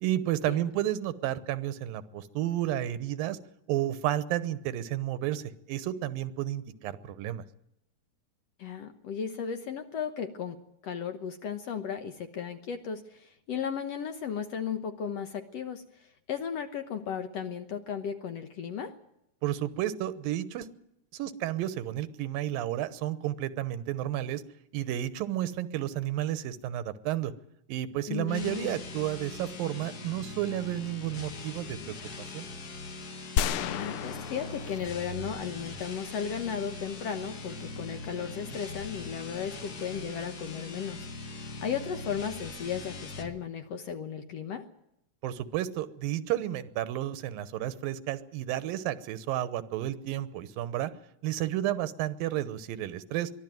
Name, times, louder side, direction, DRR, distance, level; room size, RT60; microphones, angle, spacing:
voice 1, 0.0-3.4 3.7-7.4 19.4-20.7 21.1-24.4 24.7-27.3 27.7-31.9 32.3-32.4 45.2-50.9 51.2-53.3, right 13 dB, 90° right, 14 dB, 2.8 m, -32 dB
voice 2, 8.6-19.0 28.1-28.8 33.6-44.7, left 7 dB, 65° left, 8 dB, 1.8 m, -35 dB
sound 1, 28.2-43.4, left 3 dB, 45° left, 1.3 m, -41 dB
sound 2, 33.4-35.7, left 7 dB, 85° left, 2.6 m, -34 dB
23.5 x 14.0 x 9.2 m, 0.83 s
omnidirectional pair, 3.9 m